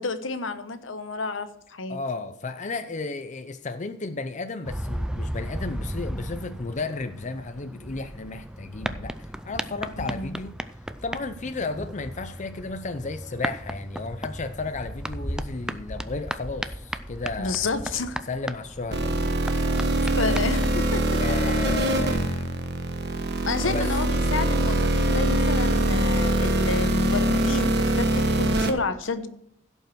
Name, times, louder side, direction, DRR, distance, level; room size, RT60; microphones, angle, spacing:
voice 1, 0.0-2.0 10.0-10.4 17.4-18.2 20.2-21.0 23.4-29.3, left 3 dB, 75° left, 10 dB, 1.0 m, -30 dB
voice 2, 1.9-10.6 11.0-17.8 18.3-19.7 20.2-20.4 21.2-22.5 23.6-23.9, left 3 dB, 40° left, 9 dB, 0.6 m, -33 dB
sound 1, 4.6-20.8, right 1 dB, 5° right, 0.4 m, -35 dB
sound 2, 18.9-28.7, right 1 dB, 60° right, 1.3 m, -23 dB
16.0 x 5.5 x 6.1 m, 0.71 s
head